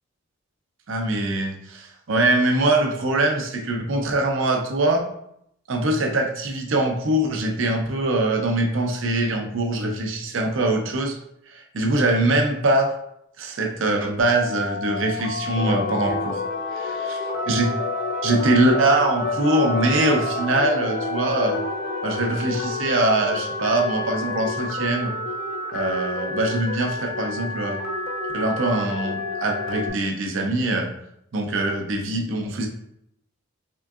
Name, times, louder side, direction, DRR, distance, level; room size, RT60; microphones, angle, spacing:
voice 1, 0.9-5.1 5.7-11.2 11.5-13.0 13.4-16.4 16.7-17.1 17.5-17.7 18.2-21.6 22.0-25.1 25.7-27.8 28.3-30.9 31.3-32.7, right 2 dB, 65° right, 3 dB, 0.6 m, -23 dB
Telephone, 14.2-29.9, left 2 dB, 85° left, 0.7 m, -32 dB
sound 1, 15.6-30.0, left 4 dB, 45° left, 0.3 m, -31 dB
3.7 x 3.5 x 2.4 m, 0.75 s
head